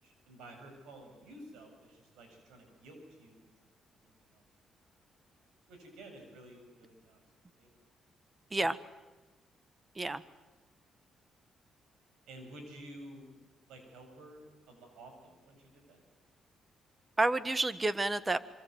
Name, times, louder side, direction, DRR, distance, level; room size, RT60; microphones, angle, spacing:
voice 1, 0.0-3.4 4.0-4.4 5.7-7.2 7.6-7.7 12.3-13.3 13.7-16.0, right 1 dB, 90° right, 5 dB, 7.5 m, -52 dB
voice 2, 17.2-18.4, right 2 dB, 20° right, 14 dB, 1.4 m, -29 dB
26.5 x 24.0 x 8.0 m, 1.2 s
cardioid pair, 80°, 0 cm